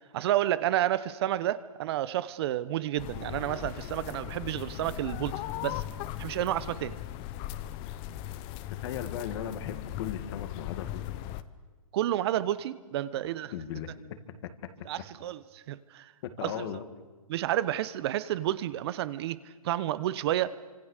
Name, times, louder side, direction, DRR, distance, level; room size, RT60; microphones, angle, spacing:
voice 1, 0.1-5.3 5.6-5.8 6.2-6.9 11.9-13.5 14.9-16.1 16.4-16.6 17.3-20.6, right 13 dB, 45° right, 16 dB, 1.0 m, -30 dB
sound 1, 3.0-11.4, left 13 dB, 30° left, 0.9 m, -38 dB
voice 2, 8.8-11.0 13.5-13.9 14.4-14.7 16.2-16.8, left 9 dB, 45° left, 9 dB, 2.2 m, -37 dB
29.0 x 26.0 x 6.7 m, 1.3 s
hypercardioid pair, 140°, 19 cm